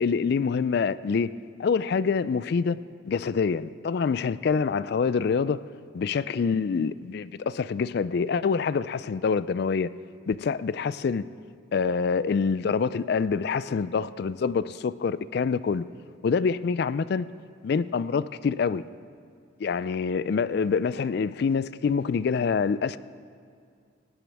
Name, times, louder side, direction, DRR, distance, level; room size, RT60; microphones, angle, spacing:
voice 1, 0.0-1.3 1.6-2.8 3.0-5.6 5.9-9.9 10.3-11.3 11.7-15.9 16.2-17.3 17.6-18.8 19.6-23.0, left 5 dB, 55° left, 0.3 m, -26 dB
18.0 x 17.5 x 3.5 m
head